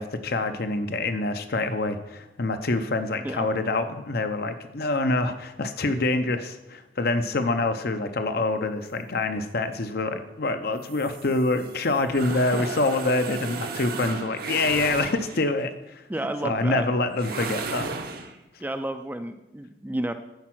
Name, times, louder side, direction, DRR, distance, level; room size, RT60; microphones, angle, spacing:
voice 1, 0.0-16.0 16.4-17.9, left 2 dB, 55° left, 8 dB, 0.7 m, -26 dB
sound 1, 10.8-15.6 17.1-18.3, right 4 dB, 55° right, 0.8 m, -35 dB
voice 2, 12.3-12.7 16.1-16.9 18.6-20.1, right 1 dB, 10° right, 8 dB, 0.4 m, -31 dB
10.5 x 4.6 x 6.0 m, 0.93 s
head